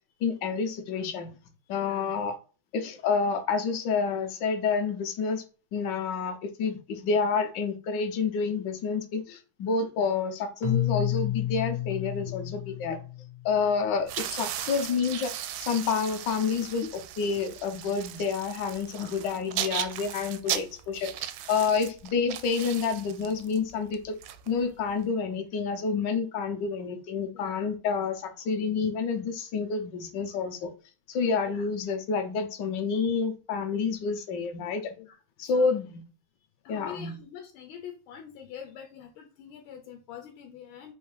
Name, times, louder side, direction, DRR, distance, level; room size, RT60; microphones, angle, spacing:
voice 1, 0.2-1.3 1.7-2.3 2.7-5.4 5.7-13.0 13.4-15.3 15.6-24.1 24.5-30.7 31.1-34.9 35.4-36.0 36.7-37.2, left 5 dB, 70° left, 1.2 m, -29 dB
voice 2, 1.6-2.0 27.3-27.7 31.4-31.7 35.0-35.8 36.4-40.9, left 8 dB, 85° left, 1.5 m, -45 dB
Keyboard (musical), 10.6-13.6, left 12 dB, 40° left, 0.6 m, -30 dB
sound 1, 14.0-25.0, right 11 dB, 85° right, 1.4 m, -37 dB
4.3 x 2.6 x 4.8 m
omnidirectional pair, 2.2 m